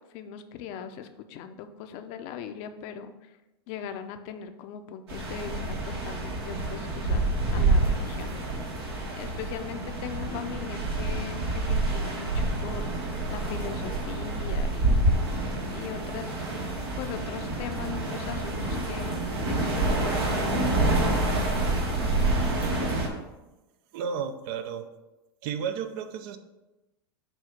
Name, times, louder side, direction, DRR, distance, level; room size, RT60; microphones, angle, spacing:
voice 1, 0.1-3.1 3.7-8.3 9.0-12.9 13.3-15.0 15.7-16.5 17.0-19.2 19.5-21.7, left 8 dB, 50° left, 8 dB, 0.7 m, -40 dB
sound 1, 5.1-23.1, right 2 dB, 85° right, 2.0 m, -27 dB
voice 2, 23.9-24.9 25.4-26.4, right 7 dB, 60° right, 9 dB, 0.7 m, -32 dB
7.9 x 2.7 x 5.9 m, 1.0 s
hypercardioid pair, 115°, 13 cm